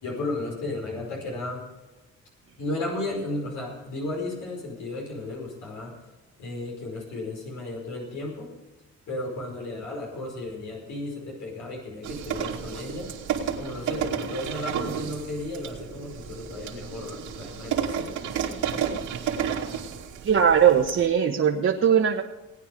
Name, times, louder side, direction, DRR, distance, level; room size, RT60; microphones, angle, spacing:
voice 1, 0.0-1.6 2.6-5.9 6.4-8.5 9.1-13.1 13.6-18.1, left 2 dB, 80° left, -1 dB, 5.2 m, -34 dB
sound 1, 12.0-21.1, right 8 dB, 80° right, 2.6 m, -32 dB
voice 2, 20.2-22.2, right 8 dB, 50° right, 0 dB, 1.4 m, -20 dB
18.5 x 9.4 x 5.3 m, 1.1 s
cardioid pair, 90°, 30 cm